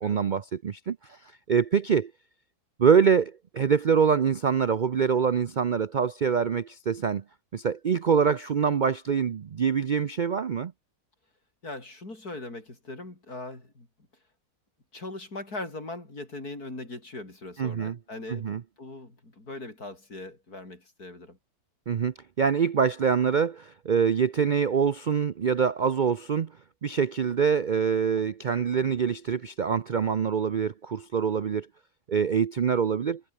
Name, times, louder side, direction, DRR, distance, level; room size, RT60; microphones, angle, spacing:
voice 1, 0.0-1.2 1.5-2.1 2.8-7.2 7.5-10.7 17.6-18.0 18.3-18.6 21.9-26.5 26.8-31.7 32.1-33.2, right 6 dB, 55° right, 0.5 m, -25 dB
voice 2, 11.6-13.9 14.9-21.4, left 2 dB, 80° left, 6.9 m, -40 dB
omnidirectional pair, 1.6 m